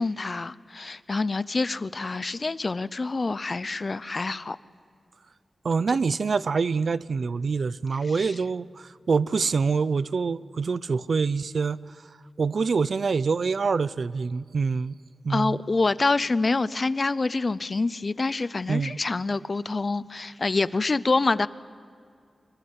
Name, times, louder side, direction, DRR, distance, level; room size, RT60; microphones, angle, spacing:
voice 1, 0.0-4.6 5.9-6.0 8.2-8.3 15.3-21.5, left 3 dB, 40° left, 17 dB, 0.6 m, -26 dB
voice 2, 5.6-11.8 12.4-15.0 15.2-15.6 18.7-19.0, right 5 dB, 65° right, 18 dB, 0.6 m, -25 dB
25.5 x 22.5 x 8.2 m, 2.3 s
wide cardioid pair, 115°, 0 cm